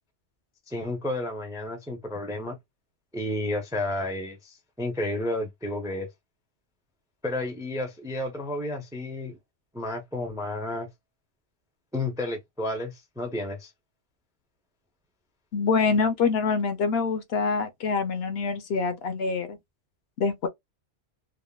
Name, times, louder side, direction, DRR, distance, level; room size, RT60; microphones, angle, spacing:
voice 1, 0.7-2.6 3.1-6.1 7.2-9.4 9.7-10.9 11.9-13.7, left 1 dB, 5° right, 0.4 m, -31 dB
voice 2, 15.5-19.6 20.2-20.5, left 5 dB, 65° left, 0.8 m, -25 dB
3.4 x 2.1 x 2.3 m
omnidirectional pair, 1.2 m